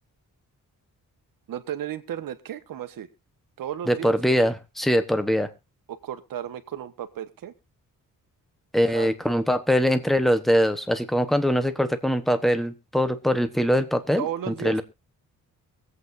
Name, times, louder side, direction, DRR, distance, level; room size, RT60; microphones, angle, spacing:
voice 1, 1.5-3.1 3.6-4.2 5.9-7.5 8.9-9.1 14.2-14.8, right 10 dB, 80° right, 9 dB, 1.3 m, -34 dB
voice 2, 3.9-5.5 8.7-14.3 14.6-14.8, equal, ahead, 10 dB, 1.0 m, -22 dB
23.5 x 8.3 x 2.6 m, 0.25 s
wide cardioid pair, 150°, 34 cm